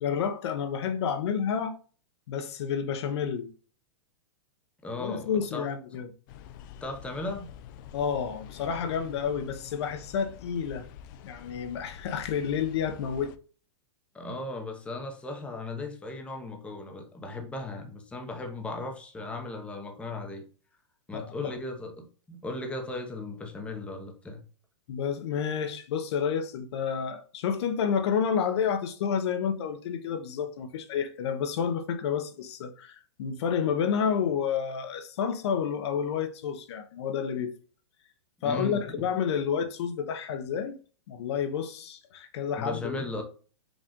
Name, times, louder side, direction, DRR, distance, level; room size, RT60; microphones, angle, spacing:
voice 1, 0.0-1.8 2.3-3.5 5.0-6.1 7.9-10.9 11.2-13.3 21.1-21.5 24.9-37.5 38.4-40.7 41.1-43.0, left 7 dB, 60° left, 0.7 m, -30 dB
voice 2, 4.8-5.7 6.8-7.5 14.1-20.4 21.1-24.4 38.4-38.8 42.6-43.2, left 2 dB, 5° left, 0.7 m, -37 dB
sound 1, 6.3-13.4, left 9 dB, 40° left, 0.4 m, -47 dB
5.1 x 2.4 x 3.7 m
hypercardioid pair, 130°, 16 cm